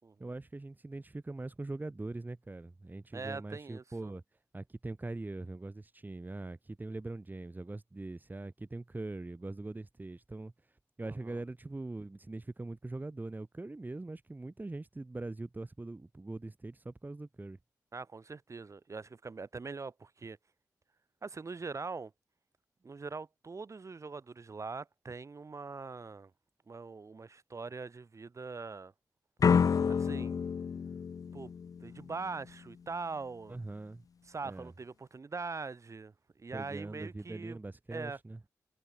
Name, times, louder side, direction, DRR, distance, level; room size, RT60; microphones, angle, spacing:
voice 1, 0.2-4.2 4.5-10.5 11.0-17.6 33.5-34.0 34.4-34.7 36.5-38.4, right 2 dB, 30° right, 4.4 m, -42 dB
voice 2, 3.1-4.1 11.0-11.4 17.9-20.4 21.2-22.1 22.8-26.3 26.7-28.9 29.9-30.4 31.3-31.5 31.8-33.6 34.2-36.1 36.4-37.6 37.9-38.2, right 4 dB, 50° right, 6.3 m, -42 dB
sound 1, 29.4-32.3, left 6 dB, 65° left, 0.5 m, -29 dB
cardioid pair, 65°, 6 cm